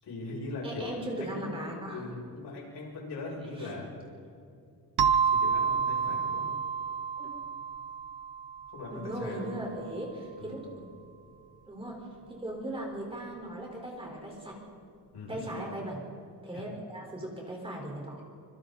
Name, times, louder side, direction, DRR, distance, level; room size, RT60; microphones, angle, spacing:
voice 1, 0.0-1.6 1.9-3.9 5.2-6.5 8.7-9.6 10.4-10.6 15.1-15.4 16.5-16.7, left 2 dB, 75° left, -3 dB, 7.4 m, -40 dB
voice 2, 0.6-2.0 3.6-3.7 7.2-7.3 8.9-10.9 11.7-12.0 12.3-14.6 15.3-16.0 16.4-18.2, right 1 dB, 15° right, -1 dB, 4.3 m, -38 dB
sound 1, 5.0-9.4, right 6 dB, 70° right, 1.2 m, -29 dB
26.0 x 25.5 x 4.1 m, 2.4 s
wide cardioid pair, 180°, 40 cm